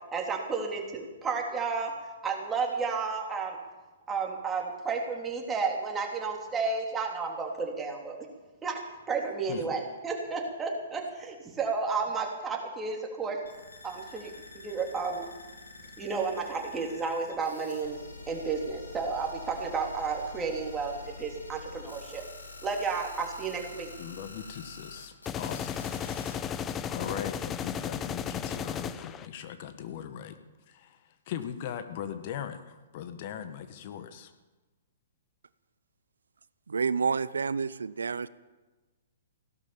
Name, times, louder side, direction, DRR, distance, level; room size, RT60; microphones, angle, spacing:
voice 1, 0.1-1.9 2.2-3.6 4.1-8.2 8.6-8.8 9.1-13.4 13.8-15.2 16.0-18.0 18.3-22.2 22.6-23.9, right 4 dB, 15° right, 0 dB, 3.5 m, -32 dB
sound 1, 13.4-26.4, left 3 dB, 90° left, 2.8 m, -47 dB
voice 2, 24.0-25.9 26.2-30.4 30.7-31.0 31.3-34.3, left 9 dB, 50° left, 9 dB, 1.7 m, -39 dB
sound 2, 25.3-29.3, left 8 dB, 25° left, 0.8 m, -34 dB
voice 3, 36.7-38.3, right 5 dB, 80° right, 18 dB, 0.6 m, -29 dB
17.0 x 11.5 x 7.2 m, 1.2 s
hypercardioid pair, 120°, 0 cm